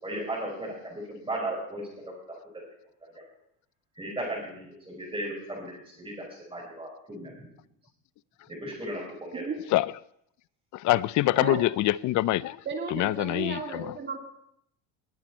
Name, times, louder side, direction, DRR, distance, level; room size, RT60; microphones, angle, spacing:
voice 1, 0.0-2.0 3.1-3.2 3.9-7.3 8.6-9.4, right 1 dB, 15° right, -6 dB, 5.1 m, -36 dB
voice 2, 10.7-12.6 12.9-13.9, left 16 dB, 55° left, 20 dB, 0.5 m, -25 dB
voice 3, 12.7-14.2, right 4 dB, 30° right, 2 dB, 2.8 m, -34 dB
20.5 x 9.1 x 4.4 m, 0.73 s
cardioid pair, 120°, 36 cm